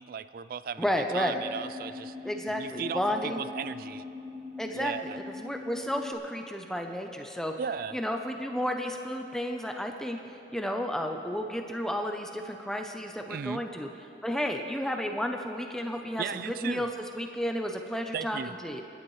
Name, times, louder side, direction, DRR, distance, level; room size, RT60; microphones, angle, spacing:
voice 1, 0.0-0.8 1.1-2.2 2.6-4.0 4.7-5.2 7.6-7.9 13.3-13.6 16.2-16.9 18.1-18.5, right 7 dB, 55° right, 14 dB, 0.3 m, -36 dB
voice 2, 0.8-1.4 2.2-3.4 4.6-7.5 7.9-10.2 10.5-13.9 14.2-16.9 17.1-18.8, equal, 5° left, 3 dB, 0.6 m, -32 dB
sound 1, 1.1-6.1, left 3 dB, 30° right, 3.0 m, -42 dB
28.0 x 10.5 x 3.2 m, 2.9 s
head